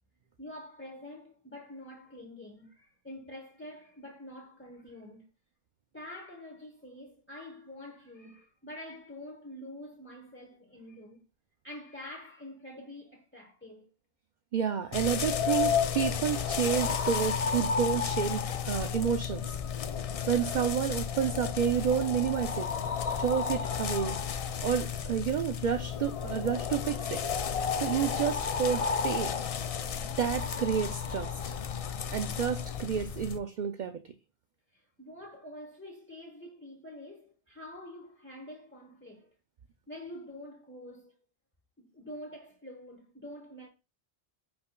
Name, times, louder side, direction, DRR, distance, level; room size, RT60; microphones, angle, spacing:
voice 1, 0.4-5.3 5.9-11.3 11.6-13.9 34.7-39.3 39.9-41.2 41.8-43.7, left 1 dB, 10° left, 0.9 m, -46 dB
voice 2, 14.5-19.6 20.3-22.7 23.2-27.2 27.7-29.3 30.2-31.6 32.1-34.0, right 8 dB, 55° right, 0.6 m, -30 dB
sound 1, 14.9-33.4, left 7 dB, 55° left, 0.4 m, -32 dB
11.0 x 4.4 x 2.2 m
omnidirectional pair, 1.0 m